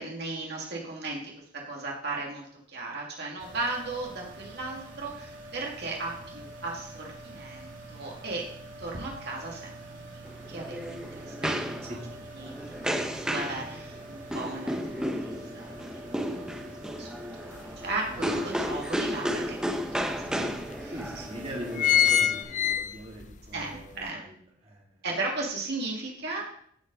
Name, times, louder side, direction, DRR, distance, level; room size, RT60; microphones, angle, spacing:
voice 1, 0.0-8.5 8.8-12.0 12.4-13.0 13.3-19.8 23.5-24.2 25.0-26.4, right 2 dB, 55° right, -2 dB, 2.2 m, -36 dB
sound 1, 3.4-22.4, right 1 dB, 70° right, 2.7 m, -45 dB
sound 2, 10.3-22.7, equal, 5° right, 0.9 m, -33 dB
sound 3, 17.6-17.7 18.1-19.3 19.9-20.0 20.3-20.4 21.0-21.3 21.5-23.3 23.8-23.9, left 9 dB, 40° left, 0.5 m, -24 dB
voice 2, 18.1-18.4 20.3-20.5 20.9-24.3 24.6-24.8, equal, 30° right, -3 dB, 2.4 m, -41 dB
15.0 x 5.3 x 5.2 m, 0.65 s
head